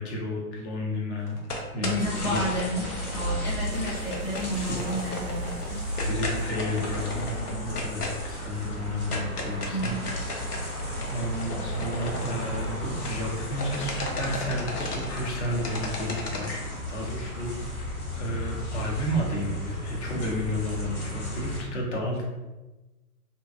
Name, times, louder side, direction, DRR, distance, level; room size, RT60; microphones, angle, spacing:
voice 1, 0.0-1.4 1.7-2.6 4.6-4.8 6.0-10.2 11.1-22.2, equal, 50° left, -1 dB, 0.7 m, -32 dB
sound 1, 1.3-3.4 3.7-13.3 13.5-16.5, left 2 dB, 90° left, 0.7 m, -36 dB
voice 2, 1.8-2.8 3.1-5.5 9.7-9.8, equal, 25° left, -7 dB, 0.4 m, -30 dB
sound 2, 1.9-21.6, left 1 dB, 70° left, 1.1 m, -35 dB
sound 3, 2.9-8.0, right 1 dB, 50° right, 0.4 m, -36 dB
2.6 x 2.2 x 2.3 m, 1.1 s
figure-of-eight pair, 125°, 45 cm